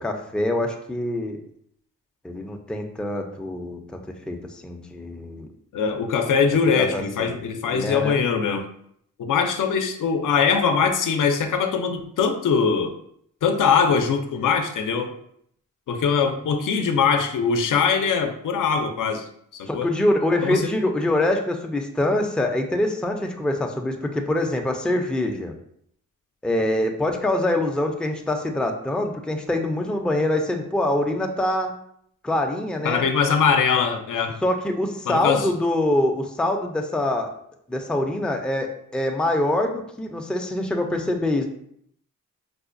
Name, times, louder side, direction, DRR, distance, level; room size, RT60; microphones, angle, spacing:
voice 1, 0.0-1.4 2.2-3.8 4.3-5.5 6.7-7.3 7.7-8.2 19.7-25.5 26.4-31.7 32.2-33.0 34.4-37.3 37.7-41.5, left 1 dB, 5° left, 3 dB, 0.4 m, -24 dB
voice 2, 5.7-8.6 9.2-12.9 13.4-15.1 15.9-19.3 19.5-19.9 20.4-20.7 32.8-34.4 35.1-35.5, left 6 dB, 70° left, 6 dB, 0.5 m, -22 dB
4.8 x 2.1 x 2.5 m, 0.69 s
cardioid pair, 65°, 33 cm